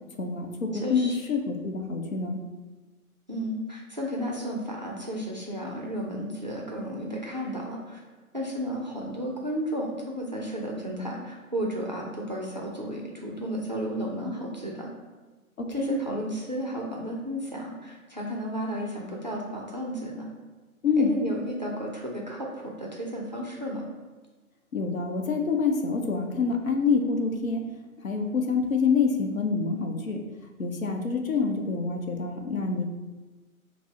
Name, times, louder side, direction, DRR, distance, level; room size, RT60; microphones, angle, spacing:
voice 1, 0.2-2.4 15.6-15.9 20.8-21.1 24.7-27.7 28.0-30.2 30.6-32.8, left 5 dB, 70° left, 3 dB, 0.7 m, -26 dB
voice 2, 0.8-1.2 3.3-8.0 8.3-14.9 15.7-20.3 21.0-23.9, equal, 35° right, -3 dB, 0.4 m, -33 dB
4.7 x 2.0 x 3.7 m, 1.3 s
figure-of-eight pair, 140°, 43 cm